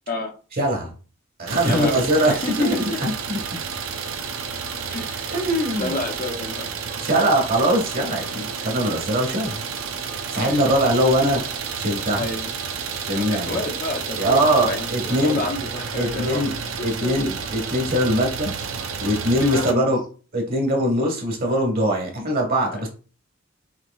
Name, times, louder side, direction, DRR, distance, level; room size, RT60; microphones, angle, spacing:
voice 1, 0.6-0.9 1.4-3.6 5.3-5.9 7.0-9.6 10.3-11.4 11.8-12.3 13.1-13.6 14.2-15.4 16.0-16.5 16.8-18.5 19.0-20.0 20.3-22.9, right 1 dB, 45° right, 1 dB, 1.4 m, -22 dB
Idling, 1.5-19.7, right 6 dB, 75° right, 0.6 m, -31 dB
voice 2, 1.6-3.0 4.9-5.3 5.8-6.7 8.6-8.7 10.3-10.7 12.2-12.5 13.1-17.4 19.4-19.9, left 2 dB, 45° left, 2 dB, 0.8 m, -30 dB
5.7 x 3.0 x 2.3 m, 0.37 s
head